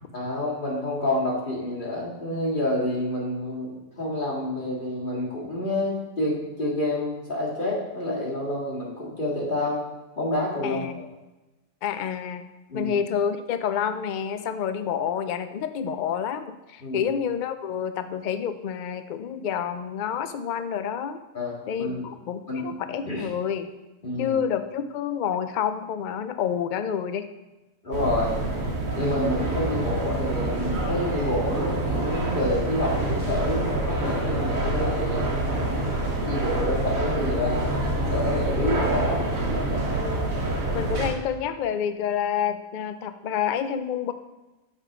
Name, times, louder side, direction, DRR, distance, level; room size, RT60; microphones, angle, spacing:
voice 1, 0.1-3.7 4.0-9.8 10.2-11.1 12.7-12.9 16.8-17.1 21.3-22.1 22.5-22.7 23.1-23.3 24.0-24.4 27.8-28.3 28.9-35.3 35.9-37.7 38.1-39.2 40.7-40.8, left 1 dB, 40° left, -3 dB, 2.2 m, -28 dB
voice 2, 10.6-11.0 11.8-12.5 12.7-21.2 21.7-23.7 24.2-27.3 38.6-38.7 40.0-40.4 40.7-44.1, left 8 dB, 85° left, 10 dB, 0.4 m, -28 dB
sound 1, 27.9-41.1, right 1 dB, 75° right, 1.8 m, -26 dB
8.8 x 6.8 x 3.6 m, 1.1 s
omnidirectional pair, 1.4 m